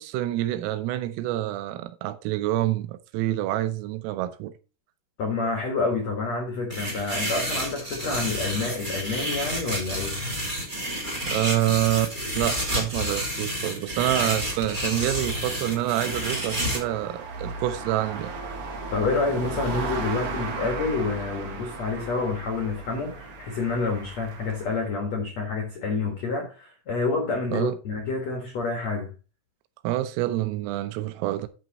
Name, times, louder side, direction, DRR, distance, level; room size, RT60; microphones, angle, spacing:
voice 1, 0.0-4.5 11.3-18.3 27.5-27.8 29.8-31.5, right 14 dB, 85° right, 3.5 m, -27 dB
voice 2, 5.2-10.2 18.9-29.1, left 3 dB, 75° left, 1.5 m, -28 dB
sound 1, 6.7-16.8, equal, 30° right, 0.8 m, -30 dB
sound 2, 14.4-24.9, right 3 dB, 60° right, 2.1 m, -36 dB
9.8 x 6.3 x 4.2 m
omnidirectional pair, 5.9 m